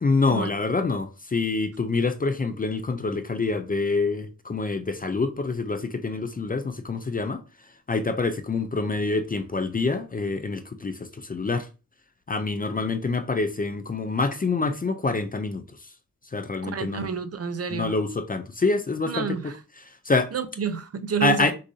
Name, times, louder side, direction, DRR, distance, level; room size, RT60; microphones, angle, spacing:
voice 1, 0.0-7.4 7.9-11.7 12.3-15.6 16.3-17.1 17.7-19.4 19.9-20.3 21.2-21.5, left 3 dB, 25° left, 0.4 m, -26 dB
voice 2, 16.6-17.9 19.1-19.6 20.3-21.5, right 6 dB, 45° right, 0.6 m, -29 dB
6.3 x 2.6 x 2.7 m
wide cardioid pair, 105°, 33 cm